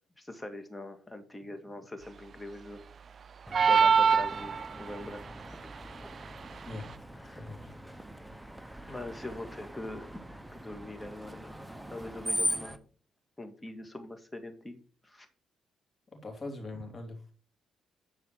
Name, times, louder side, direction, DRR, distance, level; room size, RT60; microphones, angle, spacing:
voice 1, 0.2-2.8 3.6-5.2 7.2-7.5 7.9-8.0 8.8-11.5 11.9-12.8 13.4-15.3, left 1 dB, 15° left, 7 dB, 1.9 m, -43 dB
Screech, 3.5-12.8, equal, 10° right, 0.9 m, -40 dB
sound 1, 3.5-5.0, right 6 dB, 45° right, 0.3 m, -23 dB
voice 2, 7.3-7.7 16.1-17.2, left 2 dB, 35° left, 2 dB, 3.5 m, -41 dB
11.0 x 4.9 x 6.3 m, 0.40 s
cardioid pair, 90°, 0 cm